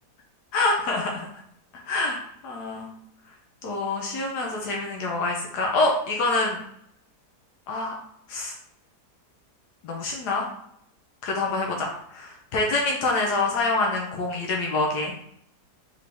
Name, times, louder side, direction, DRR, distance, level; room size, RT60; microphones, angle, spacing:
voice 1, 0.5-1.3 1.8-2.9 3.6-6.6 7.7-7.9 8.3-8.6 9.8-10.5 11.2-15.1, left 2 dB, 75° left, 0 dB, 1.3 m, -26 dB
3.7 x 3.5 x 3.3 m, 0.73 s
omnidirectional pair, 1.8 m